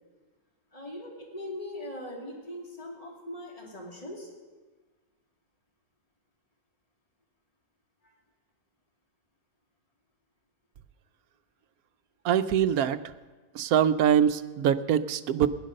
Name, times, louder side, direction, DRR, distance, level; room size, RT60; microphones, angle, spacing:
voice 1, 0.7-4.3, left 1 dB, 25° left, -1 dB, 2.6 m, -40 dB
voice 2, 12.2-13.0 13.5-15.5, right 9 dB, 70° right, 12 dB, 1.1 m, -23 dB
17.0 x 10.5 x 6.5 m, 1.3 s
omnidirectional pair, 1.6 m